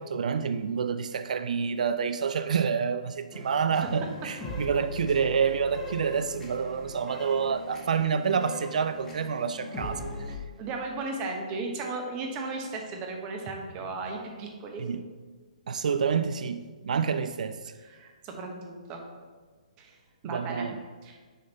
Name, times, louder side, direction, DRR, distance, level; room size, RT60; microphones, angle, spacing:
voice 1, 0.0-10.4 14.8-15.1 15.7-17.7 20.2-20.8, right 6 dB, 70° right, 11 dB, 0.3 m, -28 dB
sound 1, 3.3-10.4, left 1 dB, 10° left, 1.0 m, -40 dB
voice 2, 10.6-14.8 17.9-19.0 19.8-20.0 20.2-20.7 21.0-21.1, right 3 dB, 25° right, 2 dB, 0.9 m, -35 dB
6.4 x 3.9 x 4.0 m, 1.4 s
hypercardioid pair, 155°, 4 cm